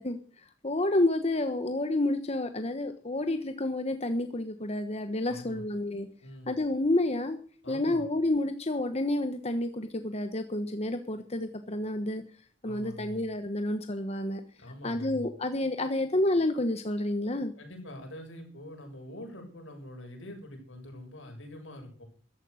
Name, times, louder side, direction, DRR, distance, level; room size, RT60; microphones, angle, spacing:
voice 1, 0.0-6.1 6.5-7.4 7.7-12.2 12.6-14.4 14.8-17.5, left 1 dB, 35° left, 8 dB, 1.2 m, -29 dB
voice 2, 5.3-5.6 6.2-6.5 7.6-8.0 12.6-13.2 14.6-15.2 17.6-22.0, left 1 dB, 80° left, 2 dB, 7.4 m, -44 dB
14.0 x 13.0 x 6.5 m, 0.42 s
head